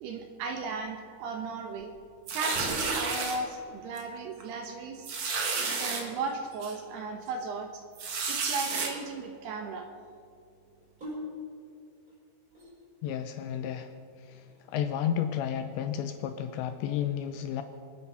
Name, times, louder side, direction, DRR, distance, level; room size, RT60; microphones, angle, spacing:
voice 1, 0.0-2.0 2.3-5.1 5.8-7.8 8.3-9.9, right 4 dB, 70° right, 4 dB, 2.7 m, -36 dB
sound 1, 2.3-3.4 4.0-4.1 4.4-4.5 5.0-6.0 6.6-6.7 8.0-8.9, right 4 dB, 55° right, 2.3 m, -31 dB
sound 2, 7.7-8.5 10.7-13.1 14.3-14.9, left 1 dB, 15° right, 5.4 m, -46 dB
voice 2, 13.0-13.9 14.3-17.6, left 9 dB, 80° left, 8 dB, 2.7 m, -32 dB
26.5 x 9.7 x 5.6 m, 2.4 s
omnidirectional pair, 5.6 m